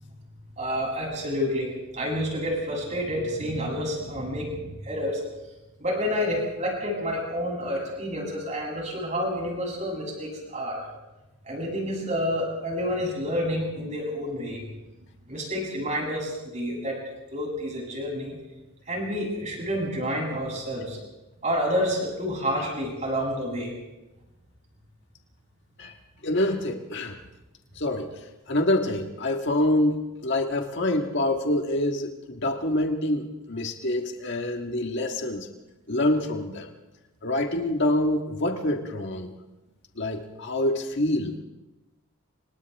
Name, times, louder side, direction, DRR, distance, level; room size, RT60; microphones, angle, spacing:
voice 1, 0.6-5.2 5.8-10.8 11.4-14.6 15.3-17.0 17.3-18.3 18.9-21.0 21.4-23.7, equal, 30° right, -1 dB, 7.8 m, -29 dB
voice 2, 26.2-27.2 27.7-35.5 35.9-36.7 37.2-39.3 40.0-41.3, left 1 dB, 50° left, 3 dB, 1.7 m, -26 dB
29.5 x 26.0 x 3.6 m, 1.0 s
head